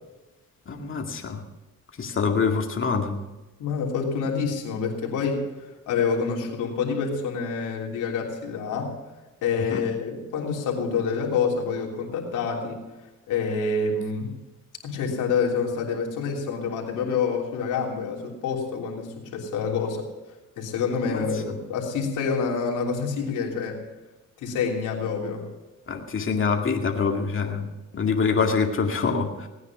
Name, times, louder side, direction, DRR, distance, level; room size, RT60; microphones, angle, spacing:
voice 1, 0.7-1.4 2.0-3.2 9.7-9.8 21.1-21.2 25.9-27.7 27.9-29.5, left 5 dB, 40° left, 2 dB, 2.2 m, -25 dB
voice 2, 3.6-5.5 5.9-8.9 9.4-12.8 13.3-14.3 14.8-20.1 20.6-23.8 24.4-25.5, left 5 dB, 90° left, -1 dB, 3.3 m, -27 dB
18.0 x 9.7 x 6.1 m, 1.1 s
cardioid pair, 90°, 30 cm